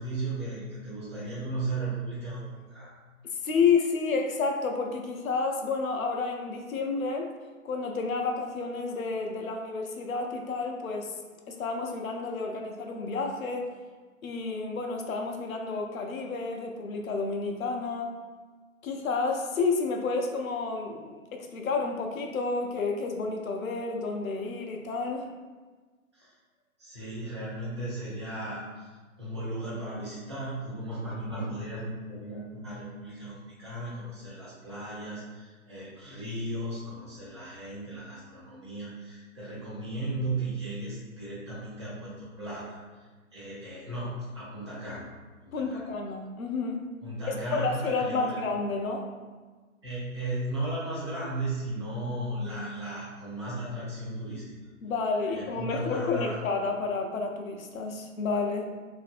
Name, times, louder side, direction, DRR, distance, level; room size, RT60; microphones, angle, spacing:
voice 1, 0.0-3.0 26.1-26.3 26.8-28.9 29.2-42.8 43.3-45.1 45.4-45.9 47.0-48.4 49.8-54.5 55.2-56.4, right 2 dB, 20° right, -8 dB, 0.5 m, -36 dB
voice 2, 3.4-7.3 7.6-11.1 11.5-13.7 14.2-18.1 18.8-25.3 45.5-46.8 47.3-49.1 54.8-58.7, left 4 dB, 75° left, 3 dB, 0.5 m, -30 dB
2.6 x 2.4 x 2.5 m, 1.4 s
figure-of-eight pair, 140°, 42 cm